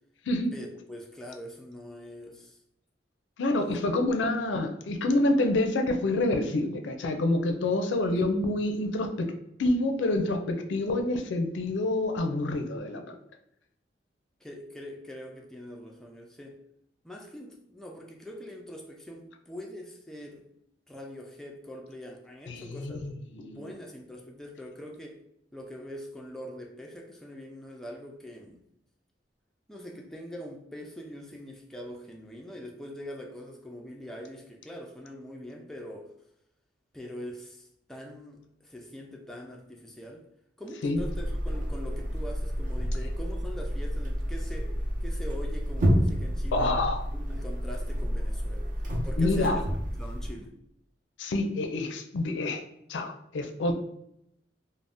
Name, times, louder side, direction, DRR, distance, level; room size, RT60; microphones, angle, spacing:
voice 1, 0.5-2.6 3.6-3.8 14.4-16.6 17.0-20.5 20.9-23.0 23.5-25.2 25.5-28.6 29.7-36.1 36.9-40.2 40.6-44.8 45.0-46.7 47.1-48.7 49.0-49.6 50.0-50.5, equal, 5° left, 0 dB, 0.3 m, -43 dB
voice 2, 3.4-9.3 9.6-13.2 22.5-23.6 40.8-41.0 46.5-47.0 49.2-49.7 51.2-52.6 52.9-53.7, left 2 dB, 75° left, 5 dB, 0.4 m, -27 dB
sound 1, 40.9-50.3, equal, 45° right, 0.6 m, -30 dB
2.5 x 2.0 x 3.4 m, 0.78 s
head